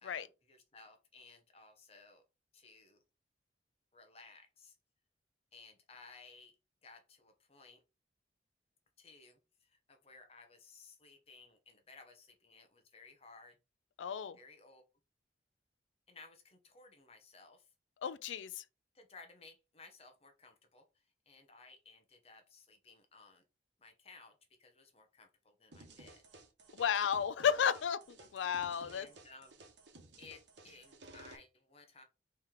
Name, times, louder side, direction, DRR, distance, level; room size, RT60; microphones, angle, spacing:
voice 1, 0.0-2.2 2.5-3.0 3.9-4.8 5.5-6.5 6.8-7.8 9.0-13.6 14.3-14.8 16.1-17.7 18.9-23.4 23.8-26.2 28.5-29.6 30.2-32.0, left 4 dB, 30° left, 0.8 m, -58 dB
voice 2, 14.0-14.4 18.0-18.6 26.7-29.1, left 8 dB, 85° left, 0.4 m, -33 dB
sound 1, 25.7-31.4, right 2 dB, 75° right, 1.2 m, -56 dB
4.4 x 3.2 x 3.6 m
head